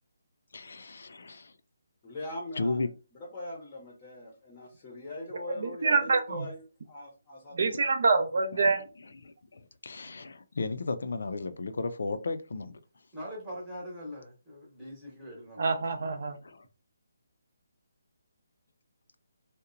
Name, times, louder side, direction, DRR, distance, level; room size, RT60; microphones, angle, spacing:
voice 1, 0.5-1.5 2.6-2.9 9.2-12.8 16.4-16.7, left 3 dB, 70° left, 0.4 m, -34 dB
voice 2, 2.0-2.9 3.1-7.9, left 1 dB, 20° left, 0.7 m, -42 dB
voice 3, 5.6-6.5 7.5-8.8 15.6-16.4, right 4 dB, 55° right, 0.5 m, -26 dB
voice 4, 13.1-15.7, equal, 5° right, 0.9 m, -42 dB
2.8 x 2.0 x 2.5 m
hypercardioid pair, 170°, 0 cm